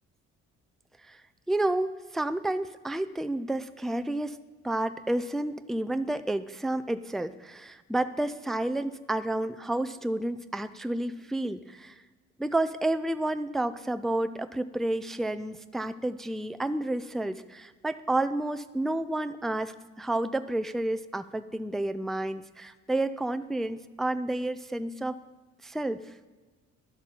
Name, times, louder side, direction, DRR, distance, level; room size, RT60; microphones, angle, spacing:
voice 1, 1.5-4.4 4.6-12.0 12.4-25.2 25.6-26.0, right 1 dB, ahead, 10 dB, 0.3 m, -30 dB
11.5 x 4.1 x 7.0 m, 1.3 s
cardioid pair, 90°, 30 cm